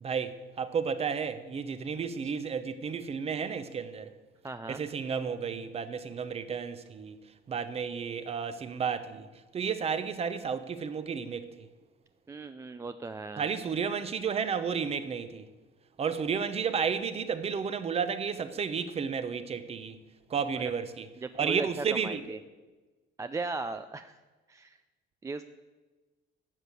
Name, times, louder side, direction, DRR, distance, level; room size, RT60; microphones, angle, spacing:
voice 1, 0.0-4.1 4.7-7.2 7.5-9.3 9.5-11.7 13.4-15.4 16.0-20.0 20.3-21.1 21.4-22.4, right 6 dB, 30° right, 0.8 m, -32 dB
voice 2, 4.4-4.8 12.3-13.5 20.5-20.7 21.2-22.4 23.2-24.2 24.5-24.8 25.2-25.4, right 3 dB, 15° right, 0.4 m, -37 dB
12.0 x 6.5 x 9.1 m
cardioid pair, 135°, 20 cm